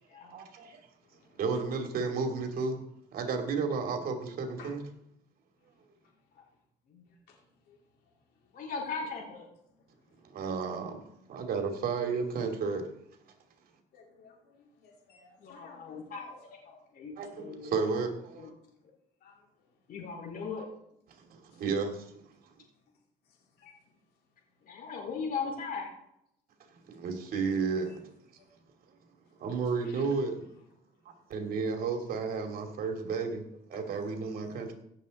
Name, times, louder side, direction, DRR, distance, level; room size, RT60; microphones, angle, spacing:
voice 1, 0.3-0.8 1.3-2.8 3.1-4.8 10.2-11.0 11.3-12.8 17.6-18.5 21.3-22.1 27.0-28.0 29.4-30.4 31.3-34.7, right 4 dB, 60° right, 4 dB, 2.7 m, -32 dB
voice 2, 1.0-1.6 3.1-3.3 4.6-4.7 5.6-6.6 7.0-8.7 9.7-11.5 13.9-16.4 16.7-16.8 17.6-17.7 18.6-18.8 19.2-19.9 21.5-21.6 22.6-22.8 23.2-24.8 27.5-28.0 28.3-28.5 29.2-30.1 30.4-30.6 31.2-31.8 33.7-34.1, left 5 dB, 70° left, -2 dB, 4.3 m, -60 dB
voice 3, 8.5-9.5 15.4-16.2 16.6-16.8 17.6-17.7 18.4-18.5 19.9-20.6 24.6-25.9, left 5 dB, 55° left, 0 dB, 4.7 m, -38 dB
16.5 x 7.5 x 4.2 m, 0.76 s
cardioid pair, 110°, 17 cm